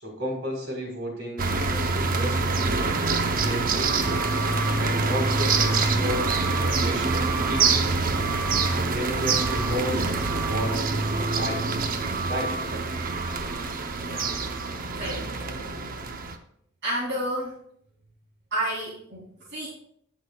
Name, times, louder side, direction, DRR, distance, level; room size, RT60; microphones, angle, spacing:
voice 1, 0.0-4.2 4.8-8.0 8.8-11.6 12.3-12.6, equal, 80° right, -2 dB, 3.9 m, -34 dB
sound 1, 1.4-16.4, right 3 dB, 45° right, 0.7 m, -25 dB
voice 2, 14.0-14.3 14.9-15.3 16.8-17.6 18.5-19.7, right 1 dB, 60° right, -8 dB, 2.9 m, -30 dB
16.5 x 6.1 x 2.3 m, 0.67 s
head